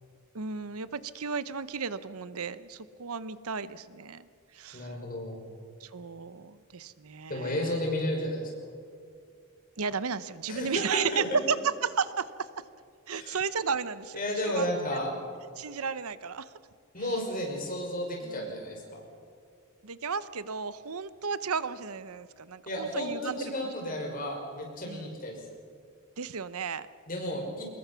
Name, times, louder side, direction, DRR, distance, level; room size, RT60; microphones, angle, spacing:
voice 1, 0.3-4.3 4.5-5.0 5.8-7.8 9.8-11.6 11.8-12.5 13.1-14.2 14.4-15.0 15.6-16.5 18.2-18.6 19.8-23.4 24.8-25.1 26.2-26.9, right 5 dB, 80° right, 15 dB, 0.9 m, -34 dB
voice 2, 4.7-5.4 7.3-8.4 10.5-11.3 13.1-13.4 14.1-15.1 16.9-19.0 22.7-25.4 27.1-27.7, left 1 dB, 40° left, 0 dB, 6.0 m, -33 dB
25.0 x 21.0 x 5.8 m, 2.3 s
head